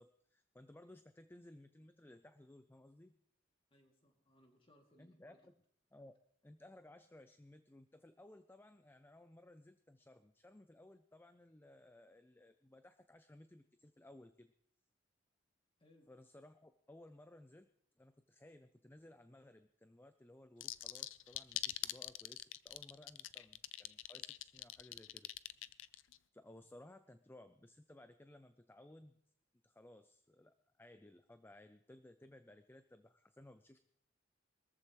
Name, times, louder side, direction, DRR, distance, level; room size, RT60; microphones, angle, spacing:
voice 1, 0.0-3.1 5.0-5.5 5.9-6.2 6.4-14.5 16.1-17.7 18.0-25.3 26.3-29.1 29.6-33.8, left 1 dB, 10° left, 10 dB, 0.4 m, -59 dB
voice 2, 3.7-5.5 15.8-16.1, left 1 dB, 25° left, 2 dB, 2.5 m, -68 dB
sound 1, 20.6-26.2, left 15 dB, 70° left, 0.5 m, -43 dB
22.0 x 14.0 x 3.1 m, 0.69 s
head